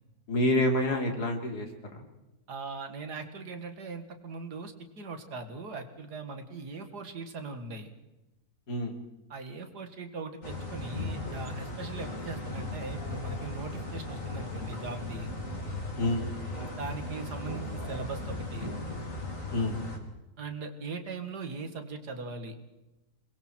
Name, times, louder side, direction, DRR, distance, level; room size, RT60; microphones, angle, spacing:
voice 1, 0.3-2.0 8.7-8.9 16.0-16.3 19.5-19.8, left 1 dB, 80° left, 3 dB, 3.5 m, -28 dB
voice 2, 2.5-7.9 9.3-15.3 16.6-18.7 20.4-22.5, right 3 dB, 85° right, 7 dB, 2.6 m, -40 dB
sound 1, 10.4-20.0, left 2 dB, 55° left, 3.4 m, -37 dB
28.0 x 22.0 x 4.6 m, 1.0 s
omnidirectional pair, 1.7 m